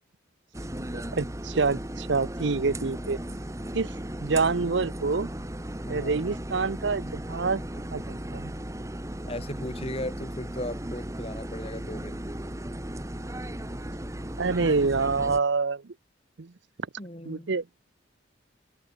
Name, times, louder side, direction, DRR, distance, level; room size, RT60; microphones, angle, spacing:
sound 1, 0.5-15.4, right 1 dB, 15° right, 1.3 m, -36 dB
voice 1, 1.1-3.2 3.7-3.9 4.2-5.3 5.9-7.6 7.9-8.5 14.4-15.8 16.4-16.5 17.3-17.6, right 4 dB, 65° right, 0.7 m, -26 dB
voice 2, 5.9-6.2 9.3-12.3 14.6-14.7 17.0-17.6, left 1 dB, 30° left, 4.3 m, -37 dB
open air
head